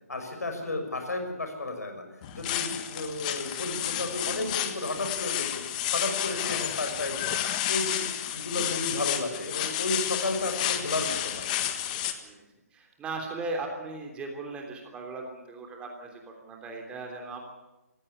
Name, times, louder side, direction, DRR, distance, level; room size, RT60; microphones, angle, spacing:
voice 1, 0.1-2.0 2.3-5.6 5.9-7.4 7.7-8.0 8.3-11.5, left 2 dB, 85° left, 5 dB, 6.3 m, -32 dB
sound 1, 2.2-12.1, left 11 dB, 30° left, 1.6 m, -31 dB
voice 2, 11.8-12.4 12.7-17.5, right 3 dB, 15° right, 2 dB, 3.2 m, -38 dB
17.5 x 16.0 x 9.9 m, 1.0 s
figure-of-eight pair, 145°, 8 cm